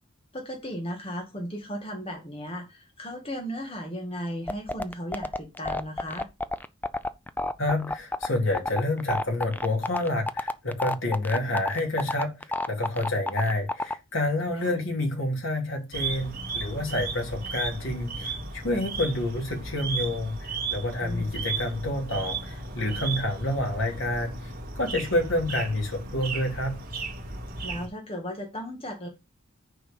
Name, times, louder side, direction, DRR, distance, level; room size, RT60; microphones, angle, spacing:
voice 1, 0.3-6.3 14.6-14.7 21.0-21.3 27.6-29.1, equal, 30° left, 1.8 m, -36 dB
sound 1, 4.5-13.9, left 2 dB, 10° left, 0.4 m, -29 dB
voice 2, 7.6-12.3 12.7-24.4 24.8-26.7, left 1 dB, 75° left, 3.1 m, -28 dB
sound 2, 15.9-27.9, right 3 dB, 45° right, 2.4 m, -35 dB
6.4 x 4.9 x 6.8 m
head